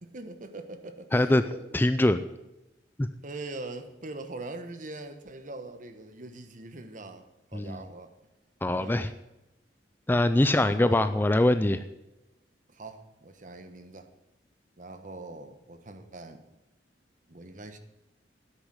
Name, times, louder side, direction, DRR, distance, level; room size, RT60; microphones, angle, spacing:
voice 1, 0.0-1.7 3.2-7.2 7.5-8.1 8.7-9.1 10.5-11.0 12.7-14.1 14.8-16.4 17.3-17.8, right 2 dB, 45° right, 9 dB, 1.2 m, -42 dB
voice 2, 1.1-1.4 1.7-2.2 3.0-3.1 7.5-7.8 8.6-9.1 10.1-11.8, left 1 dB, 10° left, 11 dB, 0.4 m, -23 dB
10.0 x 8.1 x 9.8 m, 0.96 s
head